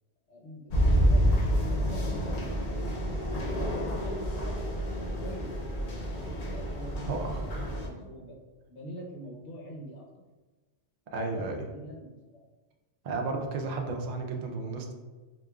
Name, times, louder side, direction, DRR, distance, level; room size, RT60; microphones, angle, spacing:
voice 1, 0.3-1.3 1.5-2.9 3.4-4.6 5.0-8.3 8.7-10.2 11.1-12.4, equal, 70° left, -1 dB, 1.0 m, -44 dB
sound 1, 0.7-7.9, equal, 50° left, 0.5 m, -28 dB
voice 2, 7.1-7.4 7.9-8.1 11.1-11.6 13.0-14.9, right 3 dB, 85° right, 2 dB, 0.3 m, -33 dB
4.9 x 2.2 x 2.3 m, 1.3 s
omnidirectional pair, 1.3 m